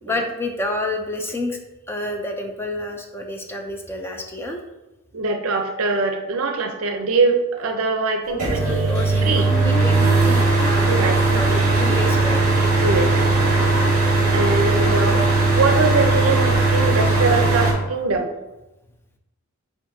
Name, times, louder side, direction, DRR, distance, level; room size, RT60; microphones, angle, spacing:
voice 1, 0.0-1.6 1.9-4.6 8.3-12.8 13.9-14.1, left 2 dB, 10° left, 2 dB, 0.4 m, -29 dB
voice 2, 5.1-9.0 9.2-9.5 10.9-12.0 12.8-13.1 14.3-15.2 15.6-18.3, right 3 dB, 65° right, 4 dB, 0.6 m, -22 dB
sound 1, 8.4-17.7, right 3 dB, 40° right, 1.2 m, -18 dB
7.4 x 2.6 x 2.6 m, 1.0 s
head